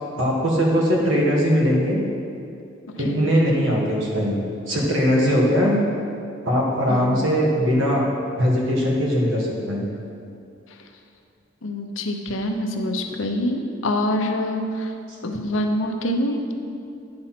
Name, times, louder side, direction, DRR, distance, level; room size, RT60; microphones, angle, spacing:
voice 1, 0.2-2.0 3.0-4.4 4.7-5.7 6.4-8.0 8.3-9.8, equal, 85° right, -3 dB, 1.7 m, -20 dB
voice 2, 11.6-14.9 15.2-16.5, left 1 dB, 85° left, 4 dB, 0.8 m, -25 dB
9.6 x 4.3 x 5.9 m, 2.5 s
head